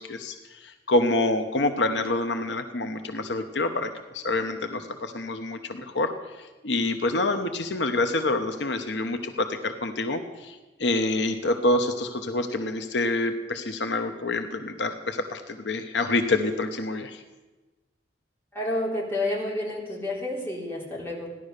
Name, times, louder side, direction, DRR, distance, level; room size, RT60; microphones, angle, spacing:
voice 1, 0.0-3.9 4.1-6.1 6.4-17.2, left 2 dB, 75° left, 7 dB, 1.0 m, -27 dB
voice 2, 18.5-21.3, left 1 dB, 15° left, -4 dB, 3.5 m, -30 dB
15.5 x 11.0 x 6.6 m, 1.2 s
head